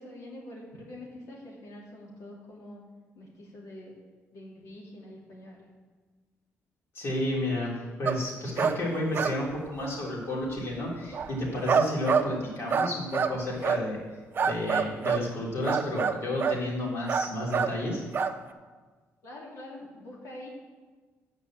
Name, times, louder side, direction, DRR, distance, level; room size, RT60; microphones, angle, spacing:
voice 1, 0.0-2.8 3.1-4.0 4.3-5.7 19.2-20.5, left 1 dB, 75° left, -3 dB, 3.1 m, -45 dB
voice 2, 6.9-14.0 14.4-18.0, left 1 dB, 55° left, -4 dB, 3.5 m, -31 dB
sound 1, 8.1-8.2 8.6-8.8 9.1-9.5 9.8-10.0 10.7-10.8 11.1-12.3 12.7-13.4 13.6-13.9 14.4-15.3 15.7-16.6 17.1-17.8 18.1-18.3, right 6 dB, 40° right, 0.6 m, -26 dB
9.8 x 5.4 x 7.5 m, 1.4 s
cardioid pair, 130°, 5 cm